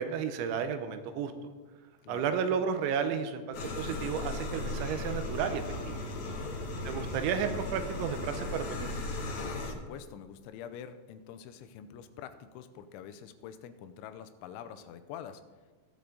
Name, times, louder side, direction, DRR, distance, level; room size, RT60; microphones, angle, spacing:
voice 1, 0.0-1.3 2.1-6.0 6.9-8.7, right 7 dB, 90° right, 9 dB, 3.1 m, -32 dB
sound 1, 3.5-9.7, left 2 dB, 60° left, 1.9 m, -36 dB
voice 2, 6.2-6.6 9.3-15.4, left 9 dB, 90° left, 10 dB, 3.1 m, -46 dB
20.0 x 6.9 x 3.9 m, 1.4 s
omnidirectional pair, 5.4 m